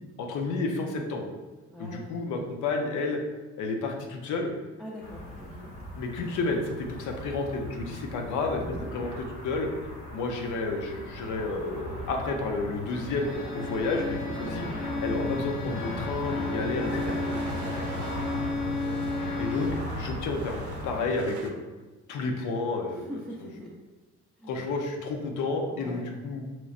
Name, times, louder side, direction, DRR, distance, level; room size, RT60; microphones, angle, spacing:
voice 1, 0.2-1.3 1.8-3.2 3.6-4.5 6.0-9.7 10.1-14.7 15.0-17.2 19.4-21.6 22.1-23.1 24.4-26.4, left 3 dB, 80° left, 3 dB, 0.6 m, -31 dB
voice 2, 1.7-2.1 4.8-5.7 8.6-8.9 14.2-14.6 17.4-18.3 22.9-23.7 24.4-24.7 25.7-26.1, equal, ahead, -6 dB, 0.5 m, -43 dB
sound 1, 5.0-21.1, left 1 dB, 45° left, 1.1 m, -37 dB
sound 2, 11.4-13.7 14.6-14.7 15.0-21.5, right 5 dB, 70° right, 0.5 m, -44 dB
Bowed string instrument, 13.0-19.9, left 3 dB, 25° left, 0.8 m, -34 dB
4.0 x 3.0 x 2.4 m, 1.2 s
cardioid pair, 90°, 30 cm